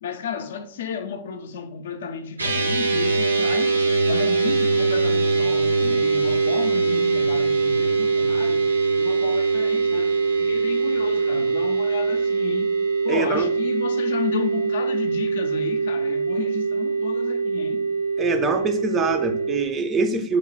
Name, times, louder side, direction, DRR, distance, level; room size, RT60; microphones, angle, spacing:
voice 1, 0.0-8.7 9.0-12.7 13.0-17.8, left 7 dB, 60° left, 0.4 m, -32 dB
sound 1, 2.4-19.7, right 4 dB, 80° right, 0.5 m, -22 dB
voice 2, 13.1-13.5 18.2-20.4, right 4 dB, 20° right, 0.4 m, -24 dB
3.2 x 2.1 x 3.9 m
figure-of-eight pair, 105°, 0 cm